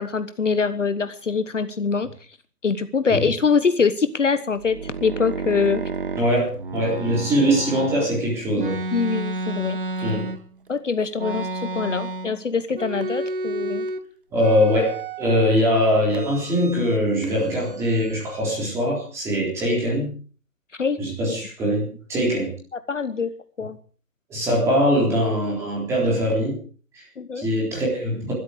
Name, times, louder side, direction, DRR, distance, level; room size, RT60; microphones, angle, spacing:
voice 1, 0.0-2.1 2.6-5.8 8.9-9.8 10.7-13.9 20.8-21.1 22.9-23.3 23.6-23.8 27.2-27.5, left 5 dB, 50° left, 12 dB, 1.2 m, -24 dB
sound 1, 4.5-8.1 8.6-10.7 11.2-12.4 12.7-14.0 14.4-15.6 16.1-17.0 17.2-18.4, right 2 dB, 35° right, 1.4 m, -31 dB
voice 2, 6.2-8.8 10.0-10.2 14.3-14.9 15.2-20.2 21.0-22.5 24.3-26.6 26.9-27.1 27.4-28.3, equal, 5° right, -2 dB, 3.7 m, -22 dB
21.0 x 13.0 x 5.0 m, 0.40 s
figure-of-eight pair, 160°, 46 cm